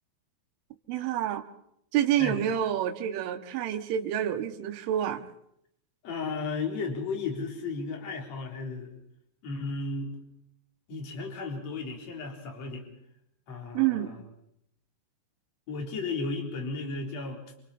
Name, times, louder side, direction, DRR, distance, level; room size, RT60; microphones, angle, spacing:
voice 1, 0.9-1.4 1.9-5.2 13.7-14.1, right 11 dB, 75° right, 5 dB, 3.8 m, -28 dB
voice 2, 6.0-8.9 9.4-10.2 10.9-12.8 13.5-14.2 15.7-17.4, left 3 dB, 35° left, 0 dB, 4.6 m, -34 dB
28.0 x 28.0 x 4.4 m, 0.74 s
omnidirectional pair, 5.9 m